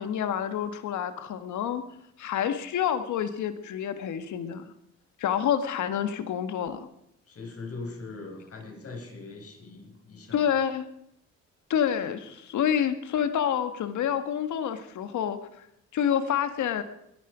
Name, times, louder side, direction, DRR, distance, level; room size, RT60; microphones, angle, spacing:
voice 1, 0.0-1.8 2.2-4.6 5.2-6.9 10.3-10.9 11.7-15.4 15.9-16.8, left 9 dB, 75° left, 9 dB, 1.7 m, -28 dB
voice 2, 7.3-10.5, left 3 dB, 50° left, 1 dB, 6.4 m, -41 dB
21.5 x 11.0 x 5.1 m, 0.75 s
cardioid pair, 90°, 30 cm